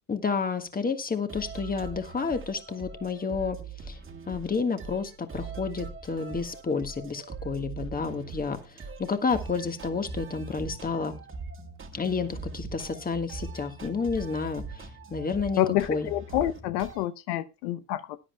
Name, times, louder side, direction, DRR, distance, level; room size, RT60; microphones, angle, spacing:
voice 1, 0.1-3.6 3.8-4.0 4.3-11.1 11.9-15.6 15.9-16.1, left 5 dB, 20° left, 1.6 m, -30 dB
sound 1, 1.3-17.1, right 4 dB, 25° right, 1.8 m, -41 dB
voice 2, 15.6-18.2, left 13 dB, 85° left, 0.9 m, -28 dB
19.5 x 9.9 x 2.3 m
supercardioid pair, 100°, 48 cm